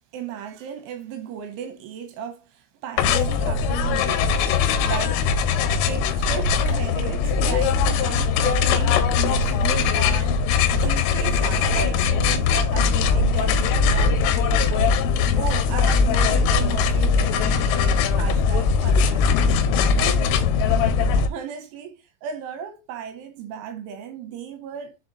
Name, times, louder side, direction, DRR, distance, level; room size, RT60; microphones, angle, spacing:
voice 1, 0.1-4.3 4.8-5.2 5.9-15.0 15.4-19.3 20.0-20.3 21.2-25.0, right 7 dB, 80° right, 3.4 m, -35 dB
sound 1, 3.0-21.3, left 5 dB, 90° left, 3.4 m, -20 dB
7.1 x 4.4 x 4.1 m
omnidirectional pair, 5.6 m